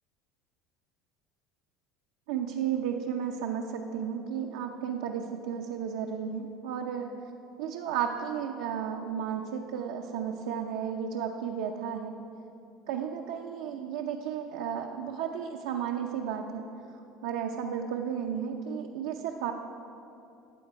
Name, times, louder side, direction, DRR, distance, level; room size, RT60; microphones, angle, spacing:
voice 1, 2.3-7.1 7.6-12.2 12.9-16.7 17.2-19.5, right 8 dB, 80° right, 1 dB, 0.6 m, -33 dB
12.5 x 7.9 x 4.6 m, 2.8 s
supercardioid pair, 90°, 0 cm